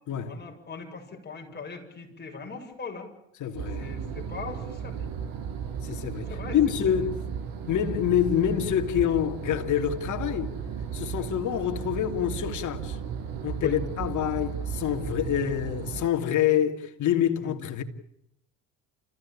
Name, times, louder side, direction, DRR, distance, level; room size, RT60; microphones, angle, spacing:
voice 1, 0.2-3.1 3.7-5.0 6.3-6.6 11.1-11.3 13.6-13.7 17.4-17.5, left 4 dB, 30° left, 7.6 m, -39 dB
voice 2, 3.4-3.9 5.8-7.2 7.7-10.5 10.9-13.0 13.4-17.8, left 10 dB, 55° left, 2.8 m, -26 dB
sound 1, 3.5-16.1, right 7 dB, 70° right, 7.3 m, -35 dB
30.0 x 16.0 x 8.8 m
supercardioid pair, 90°, 36 cm